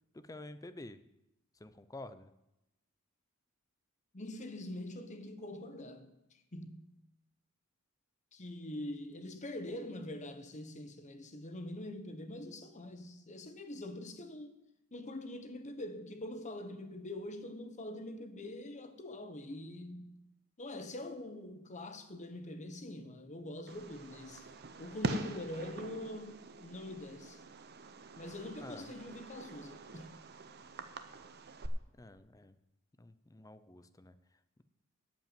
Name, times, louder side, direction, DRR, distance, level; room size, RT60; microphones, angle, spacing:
voice 1, 0.1-1.0 1.5-2.3 28.6-28.9 31.9-32.6 33.0-34.2, left 2 dB, 15° left, 0.5 m, -49 dB
voice 2, 4.1-6.9 8.3-14.6 14.9-20.2 20.6-24.5 24.8-27.4 28.2-30.2, left 1 dB, 35° left, 1.1 m, -44 dB
Fireworks, 23.7-31.7, right 2 dB, 50° right, 0.8 m, -44 dB
13.0 x 5.4 x 8.9 m
head